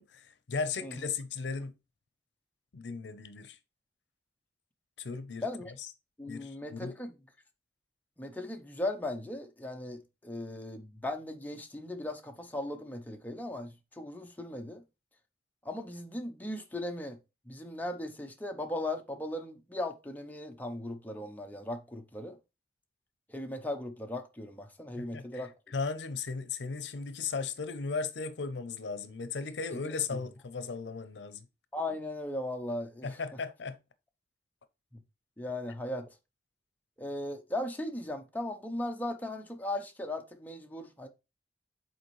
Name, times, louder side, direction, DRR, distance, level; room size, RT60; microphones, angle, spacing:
voice 1, 0.0-1.7 2.7-3.6 5.0-5.5 6.3-6.9 25.0-25.4 25.7-31.5 33.0-33.8, left 4 dB, 85° left, 0.6 m, -36 dB
voice 2, 6.2-7.1 8.2-14.8 15.6-17.2 17.5-22.4 23.3-25.5 29.7-29.9 31.7-33.2 34.9-35.0 35.4-36.1 37.0-41.1, left 1 dB, 10° left, 0.7 m, -37 dB
7.8 x 4.2 x 3.1 m
head